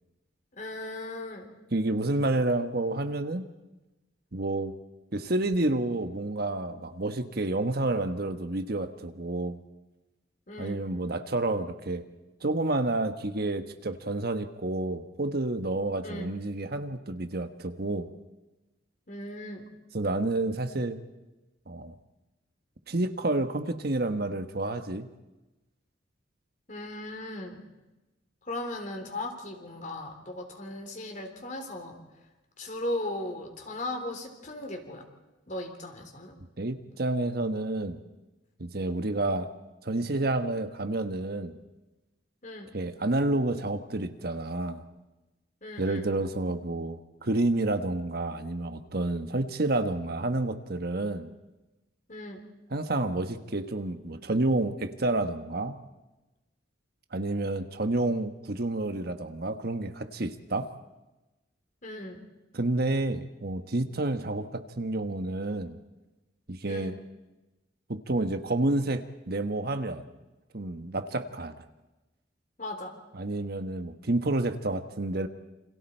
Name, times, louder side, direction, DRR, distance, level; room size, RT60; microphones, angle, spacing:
voice 1, 0.5-1.5 10.5-10.8 16.0-16.3 19.1-19.7 26.7-27.7 28.4-32.0 32.6-35.1 35.5-36.4 42.4-42.7 45.6-46.1 52.1-52.4 61.8-62.2 66.7-66.9 72.6-72.9, left 1 dB, 45° left, 4 dB, 3.5 m, -37 dB
voice 2, 1.7-3.5 4.3-4.7 5.1-9.6 10.6-12.0 12.4-18.1 19.9-21.0 21.7-21.9 22.9-25.1 36.6-38.0 38.6-39.5 39.8-41.5 42.7-44.8 45.8-51.3 52.7-55.8 57.1-60.7 62.5-65.8 66.5-67.0 67.9-70.1 70.5-71.6 73.1-75.3, right 2 dB, 55° right, 8 dB, 1.2 m, -29 dB
28.5 x 27.0 x 4.5 m, 1.1 s
head